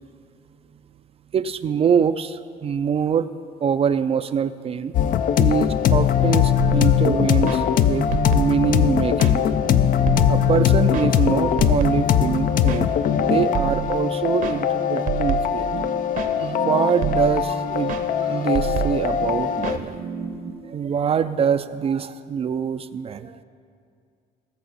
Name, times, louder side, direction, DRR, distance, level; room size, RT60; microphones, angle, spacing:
voice 1, 1.3-3.3 3.6-4.9 5.4-9.4 10.3-12.9 13.2-15.7 16.4-20.0 20.6-23.4, right 7 dB, 35° right, 11 dB, 0.4 m, -24 dB
sound 1, 4.9-19.8, left 9 dB, 55° left, 0.5 m, -21 dB
sound 2, 6.6-20.5, right 7 dB, 55° right, 0.8 m, -30 dB
19.5 x 6.6 x 4.0 m, 2.3 s
cardioid pair, 110°, 17 cm